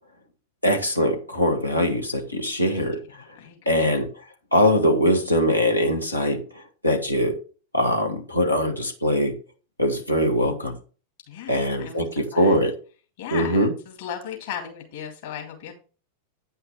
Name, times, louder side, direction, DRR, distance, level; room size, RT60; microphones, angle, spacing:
voice 1, 0.6-3.0 3.6-4.1 4.5-6.4 6.8-7.4 7.7-9.4 9.8-10.8 11.5-12.7 13.3-13.7, equal, 85° left, 1.7 m, -22 dB
voice 2, 3.4-3.9 11.3-12.6 13.2-15.7, left 9 dB, 55° left, 3.0 m, -36 dB
9.7 x 5.6 x 4.6 m
figure-of-eight pair, 90°, 0 cm